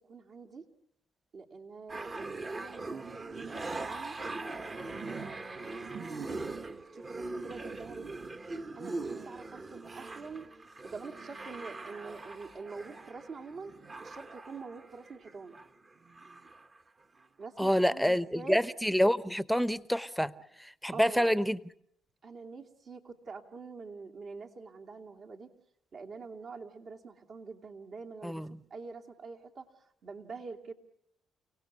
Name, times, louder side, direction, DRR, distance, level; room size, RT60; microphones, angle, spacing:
voice 1, 0.1-0.6 1.3-4.2 5.0-8.2 8.8-10.5 10.8-13.7 14.0-15.6 17.4-18.6 20.9-21.4 22.2-25.5 25.9-28.4 28.7-30.7, right 4 dB, 55° right, 2.7 m, -45 dB
sound 1, 1.9-15.7 16.0-16.8 17.2-17.3, right 3 dB, 35° right, 1.4 m, -41 dB
voice 2, 17.6-20.3 20.8-21.6 28.2-28.5, equal, ahead, 0.9 m, -27 dB
30.0 x 18.0 x 8.2 m
cardioid pair, 75°, 0 cm